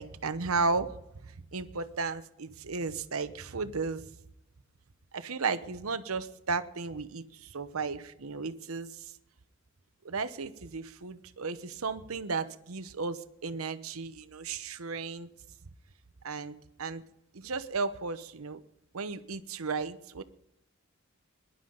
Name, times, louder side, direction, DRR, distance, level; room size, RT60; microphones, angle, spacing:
voice 1, 0.0-4.0 5.1-9.1 10.0-15.3 16.2-17.0 17.3-18.6 18.9-20.2, right 4 dB, 85° right, 12 dB, 0.9 m, -34 dB
22.0 x 11.5 x 3.9 m, 0.81 s
head